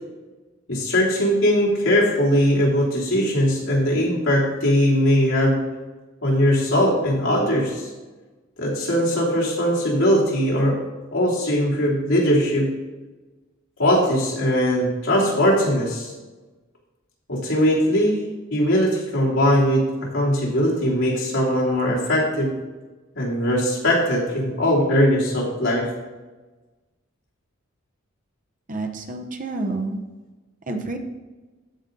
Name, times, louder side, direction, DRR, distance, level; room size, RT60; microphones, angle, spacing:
voice 1, 0.7-5.6 6.2-7.9 8.6-10.8 11.1-12.7 13.8-16.1 17.3-22.5 23.1-25.9, equal, 75° left, -5 dB, 3.1 m, -20 dB
voice 2, 28.7-30.0 30.7-31.0, right 2 dB, 40° right, 4 dB, 0.9 m, -28 dB
14.5 x 5.2 x 3.9 m, 1.2 s
head